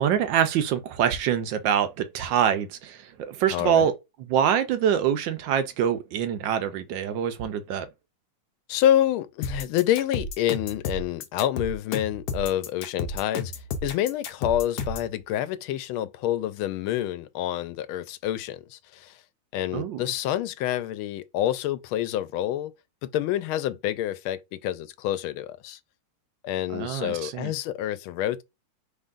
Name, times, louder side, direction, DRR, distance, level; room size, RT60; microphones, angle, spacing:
voice 1, 0.0-3.9 4.3-7.9 19.7-20.0 26.7-27.5, right 9 dB, 75° right, 1.2 m, -25 dB
voice 2, 3.5-3.9 8.7-13.5 13.8-19.2 19.5-22.7 23.0-25.8 26.4-28.4, left 12 dB, 90° left, 1.4 m, -27 dB
sound 1, 9.4-15.1, left 4 dB, 65° left, 1.2 m, -32 dB
5.6 x 3.5 x 2.5 m
omnidirectional pair, 2.2 m